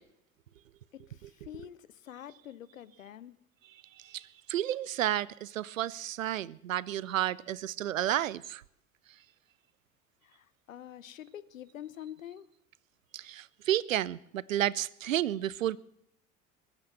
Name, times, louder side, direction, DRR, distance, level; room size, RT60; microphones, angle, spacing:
voice 1, 0.9-3.4 10.2-12.4, left 11 dB, 80° left, 0.8 m, -46 dB
voice 2, 4.5-8.6 13.1-15.8, right 12 dB, 80° right, 0.6 m, -31 dB
22.5 x 8.9 x 7.1 m
figure-of-eight pair, 60°, 39 cm